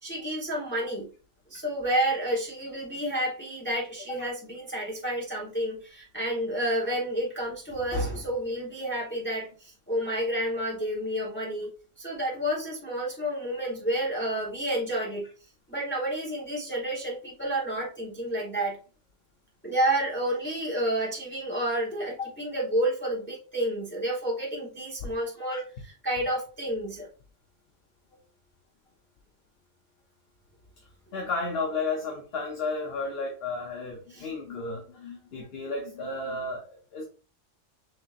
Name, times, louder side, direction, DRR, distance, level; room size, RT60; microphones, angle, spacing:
voice 1, 0.0-1.1 1.5-11.7 12.0-15.3 15.7-18.8 19.6-25.6 26.0-27.1 34.1-34.3, right 1 dB, 10° left, -4 dB, 1.1 m, -30 dB
voice 2, 31.1-37.0, left 3 dB, 55° left, 1 dB, 1.0 m, -33 dB
6.3 x 2.9 x 2.5 m, 0.37 s
omnidirectional pair, 1.3 m